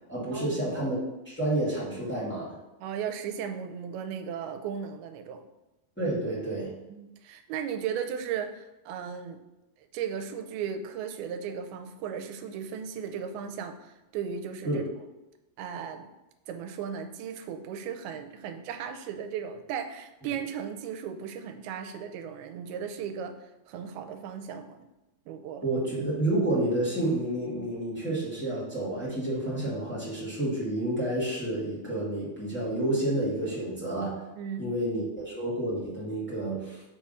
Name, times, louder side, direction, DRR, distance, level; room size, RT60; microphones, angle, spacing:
voice 1, 0.1-1.0 1.2-2.6 6.0-6.7 14.6-14.8 25.6-34.2 34.6-36.8, right 1 dB, 5° left, -9 dB, 1.2 m, -29 dB
voice 2, 2.8-5.5 6.9-9.4 9.8-14.9 15.6-16.1 16.5-24.8 25.3-25.7 34.4-34.7, right 7 dB, 85° right, 7 dB, 2.5 m, -36 dB
6.3 x 3.7 x 5.5 m, 0.98 s
omnidirectional pair, 4.4 m